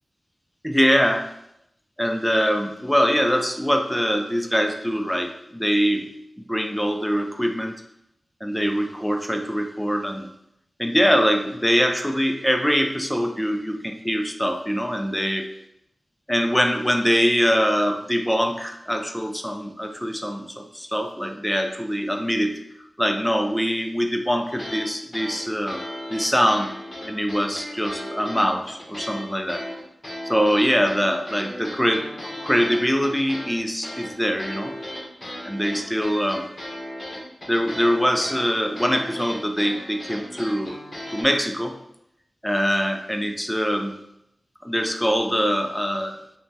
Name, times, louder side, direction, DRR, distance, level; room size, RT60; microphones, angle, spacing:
voice 1, 0.6-1.3 2.0-6.1 6.4-7.8 8.4-10.3 10.8-15.5 16.3-22.6 23.0-25.8 26.1-26.7 27.1-29.6 30.2-34.8 35.4-36.4 37.5-40.8 41.1-41.8 42.4-44.0 44.6-46.2, equal, 5° left, 5 dB, 0.3 m, -23 dB
sound 1, 24.5-24.9 25.1-29.2 29.5-41.2, left 1 dB, 40° left, 0.7 m, -36 dB
2.7 x 2.1 x 3.2 m, 0.80 s
cardioid pair, 55°, 0 cm